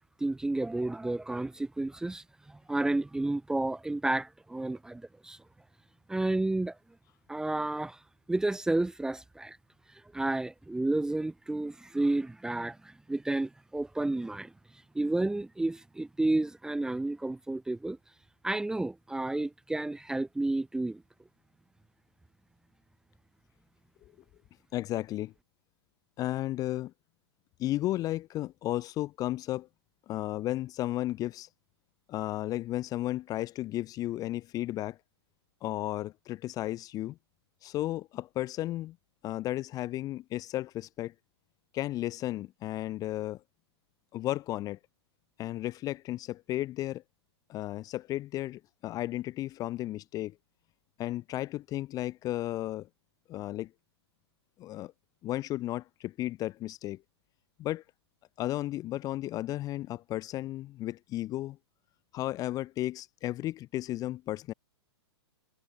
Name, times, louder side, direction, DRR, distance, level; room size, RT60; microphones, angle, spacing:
voice 1, 0.2-5.4 6.1-6.8 7.3-8.0 8.3-9.6 10.1-14.5 14.9-18.0 18.4-21.0, right 2 dB, 5° right, 0.8 m, -31 dB
voice 2, 24.7-25.3 26.2-26.9 27.6-29.7 30.1-31.5 32.1-35.0 35.6-37.2 37.6-39.0 39.2-41.1 41.7-43.4 44.1-44.8 45.4-47.0 47.5-50.4 51.0-52.9 53.3-53.7 54.6-54.9 55.2-57.0 57.6-57.8 58.4-61.6 62.1-64.5, left 15 dB, 25° left, 0.7 m, -34 dB
hypercardioid pair, 125°, 14 cm